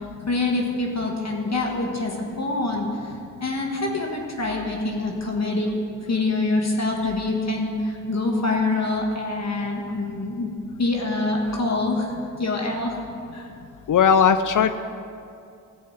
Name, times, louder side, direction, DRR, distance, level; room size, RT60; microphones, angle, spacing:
voice 1, 0.0-3.1 3.4-5.7 6.0-10.5 10.8-13.0 13.3-13.5, left 2 dB, 50° left, 0 dB, 1.8 m, -25 dB
voice 2, 13.9-14.8, left 7 dB, 70° left, 11 dB, 0.5 m, -17 dB
16.0 x 5.6 x 8.0 m, 2.5 s
cardioid pair, 55°, 33 cm